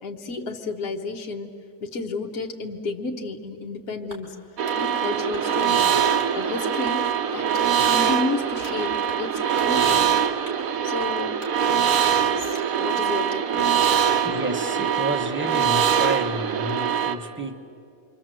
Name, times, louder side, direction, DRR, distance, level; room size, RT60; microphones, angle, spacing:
voice 1, 0.0-1.5 1.8-4.4 4.7-5.8 6.3-7.0 7.3-7.5 7.8-10.1 10.8-11.4 12.2-13.8, left 3 dB, 65° left, 1 dB, 1.7 m, -31 dB
sound 1, 4.1-4.8 5.3-5.7 6.2-6.4 6.8-7.0 7.5-7.7 8.1-8.8 9.1-9.3 9.6-9.7 10.1-10.6 11.0-11.6 12.0-12.7, right 2 dB, 45° right, 3.8 m, -43 dB
sound 2, 4.6-17.2, right 8 dB, 65° right, 1.3 m, -23 dB
voice 2, 14.2-17.7, right 1 dB, 10° right, 3 dB, 0.9 m, -30 dB
28.0 x 24.0 x 7.6 m, 2.7 s
omnidirectional pair, 1.7 m